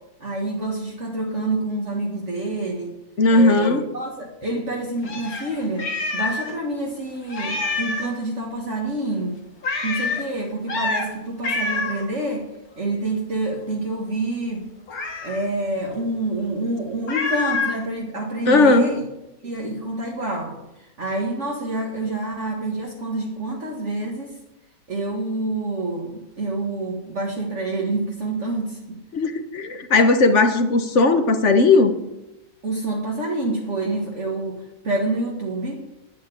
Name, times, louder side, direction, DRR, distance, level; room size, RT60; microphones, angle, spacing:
voice 1, 0.2-2.9 3.3-5.9 6.1-9.4 9.8-12.5 12.8-14.7 15.2-19.0 19.4-24.4 24.9-29.0 32.6-35.9, right 2 dB, 50° right, -2 dB, 2.2 m, -27 dB
voice 2, 3.2-3.8 18.5-19.0 29.1-31.9, left 3 dB, 55° left, 9 dB, 1.5 m, -17 dB
Meow, 5.0-6.6 6.8-6.9 7.3-8.2 9.6-10.2 10.7-11.1 11.4-12.1 14.9-15.5 17.1-17.8, left 3 dB, 70° left, 2.4 m, -26 dB
11.5 x 9.4 x 8.5 m, 0.94 s
omnidirectional pair, 1.6 m